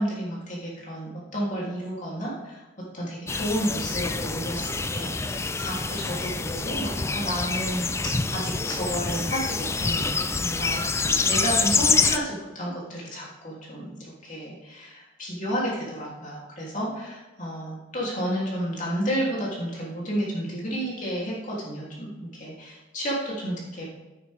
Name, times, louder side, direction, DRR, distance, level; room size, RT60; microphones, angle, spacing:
voice 1, 0.0-2.6 2.9-23.9, equal, 40° left, -5 dB, 3.0 m, -31 dB
sound 1, 3.3-12.2, left 4 dB, 15° left, 0.3 m, -26 dB
10.0 x 9.8 x 3.6 m, 1.1 s
head